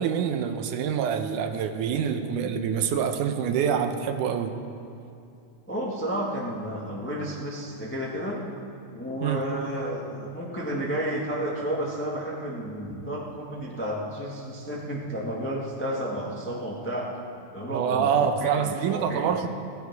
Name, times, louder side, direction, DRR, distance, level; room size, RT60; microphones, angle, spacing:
voice 1, 0.0-4.5 9.2-9.4 17.7-19.5, right 7 dB, 80° right, 7 dB, 2.2 m, -26 dB
voice 2, 5.7-8.4 8.9-17.1 17.5-19.3, equal, 10° left, -3 dB, 0.5 m, -31 dB
15.5 x 15.0 x 4.7 m, 2.6 s
omnidirectional pair, 3.6 m